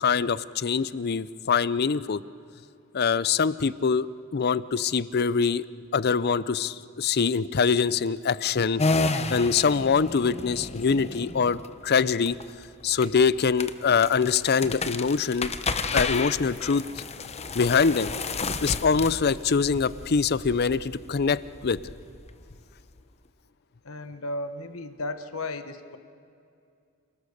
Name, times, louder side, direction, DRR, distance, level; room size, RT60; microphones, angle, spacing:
voice 1, 0.0-2.2 2.9-4.1 4.3-5.6 5.9-8.8 9.3-12.4 12.8-15.5 15.9-17.0 17.5-18.1 18.6-21.8, left 5 dB, 50° left, 17 dB, 0.6 m, -24 dB
sound 1, 8.8-23.0, left 3 dB, 30° left, 0.9 m, -32 dB
voice 2, 23.8-26.0, left 2 dB, 75° left, 10 dB, 1.2 m, -34 dB
28.0 x 19.5 x 6.6 m, 2.5 s
head